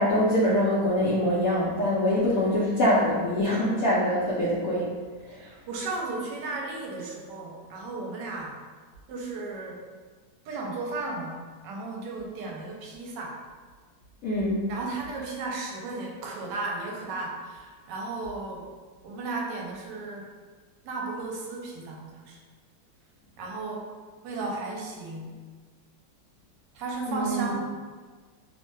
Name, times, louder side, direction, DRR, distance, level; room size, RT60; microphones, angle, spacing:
voice 1, 0.0-4.9 14.2-14.6 27.1-27.5, equal, 75° left, -7 dB, 0.8 m, -24 dB
voice 2, 5.4-8.6 9.1-9.8 10.4-13.4 14.7-18.6 19.0-20.3 20.8-22.4 23.4-23.9 24.2-25.3 26.7-27.6, right 3 dB, 75° right, -1 dB, 1.2 m, -34 dB
3.0 x 2.1 x 3.1 m, 1.4 s
omnidirectional pair, 2.0 m